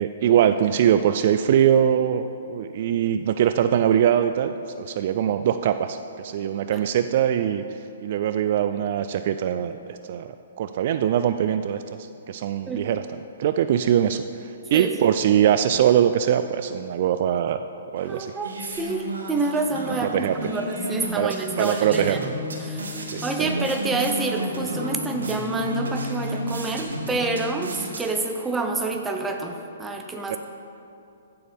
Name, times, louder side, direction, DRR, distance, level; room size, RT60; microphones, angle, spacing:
voice 1, 0.0-7.6 8.0-10.3 10.6-11.8 12.3-13.0 13.4-17.6 17.9-18.3 20.1-20.4 21.2-22.2 23.1-23.5 30.3-30.4, right 9 dB, 50° right, 10 dB, 0.3 m, -22 dB
voice 2, 14.7-15.1 18.0-22.2 22.6-22.9 23.2-30.4, right 3 dB, 10° right, 3 dB, 0.8 m, -28 dB
sound 1, 18.0-28.5, right 1 dB, 85° right, 1.6 m, -33 dB
sound 2, 19.7-28.0, left 1 dB, 25° left, 1.7 m, -35 dB
15.0 x 6.9 x 3.5 m, 2.7 s
hypercardioid pair, 140°, 0 cm